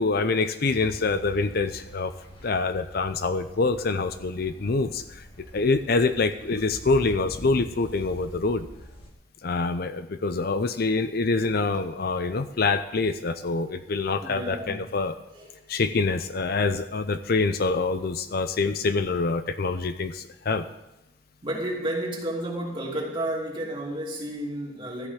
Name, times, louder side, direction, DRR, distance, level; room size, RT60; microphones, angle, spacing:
voice 1, 0.0-2.1 2.4-5.2 5.5-8.7 9.4-15.1 15.7-20.7, left 3 dB, 55° left, 10 dB, 0.6 m, -25 dB
sound 1, 0.6-9.1, equal, 30° left, 2.1 m, -44 dB
voice 2, 4.3-4.9 12.2-12.3 13.6-13.8 14.2-14.9 15.3-15.6 21.4-25.1, right 1 dB, 25° right, -2 dB, 2.8 m, -32 dB
13.5 x 5.9 x 8.2 m, 0.93 s
head